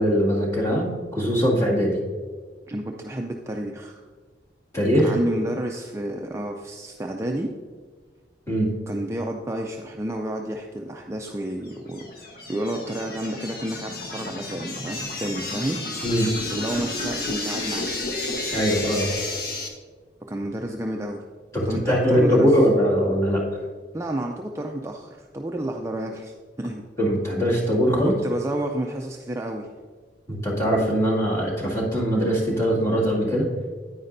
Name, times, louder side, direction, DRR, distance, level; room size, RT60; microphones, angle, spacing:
voice 1, 0.0-2.0 4.7-5.1 8.5-8.7 16.0-16.3 18.5-19.1 21.5-23.4 27.0-28.1 30.3-33.5, equal, 15° left, -5 dB, 2.2 m, -21 dB
voice 2, 2.7-4.0 5.0-7.5 8.9-16.0 16.5-17.9 20.3-21.2 21.7-22.5 23.9-26.8 28.0-29.7, right 1 dB, 15° right, 1 dB, 0.4 m, -30 dB
sound 1, 11.7-19.7, left 2 dB, 55° left, 1.1 m, -31 dB
9.5 x 9.4 x 2.6 m, 1.5 s
head